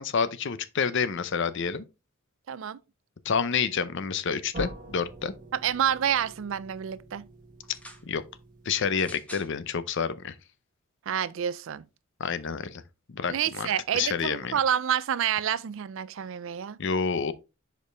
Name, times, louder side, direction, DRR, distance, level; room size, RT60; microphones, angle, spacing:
voice 1, 0.0-1.9 3.2-5.3 8.0-8.2 8.7-10.4 12.2-12.8 13.1-13.7 13.9-14.6 16.8-17.3, left 6 dB, 60° left, 0.6 m, -28 dB
voice 2, 2.5-2.8 5.5-7.3 11.1-11.8 13.3-16.8, right 9 dB, 65° right, 0.4 m, -28 dB
sound 1, 4.5-9.3, right 1 dB, 40° right, 1.5 m, -45 dB
sound 2, 7.6-8.1 8.9-9.5 10.4-10.5, left 1 dB, 5° left, 0.9 m, -46 dB
6.6 x 5.1 x 3.3 m
head